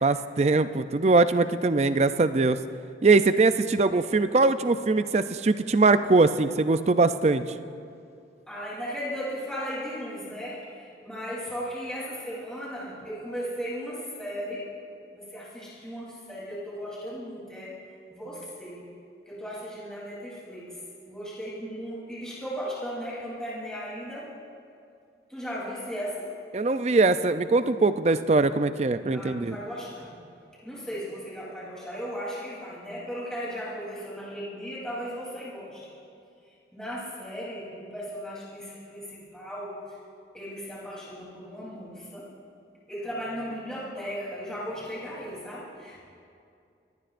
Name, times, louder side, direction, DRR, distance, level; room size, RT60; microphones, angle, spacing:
voice 1, 0.0-2.6 3.0-7.4 26.5-29.6, right 3 dB, 35° right, 11 dB, 0.4 m, -22 dB
voice 2, 8.5-14.7 15.1-17.8 18.1-18.8 19.2-20.8 21.1-24.3 25.3-26.3 29.1-30.2 30.6-35.9 36.7-39.8 40.3-42.3 42.9-46.0, equal, 5° left, -8 dB, 3.3 m, -36 dB
23.5 x 18.0 x 2.6 m, 2.5 s
head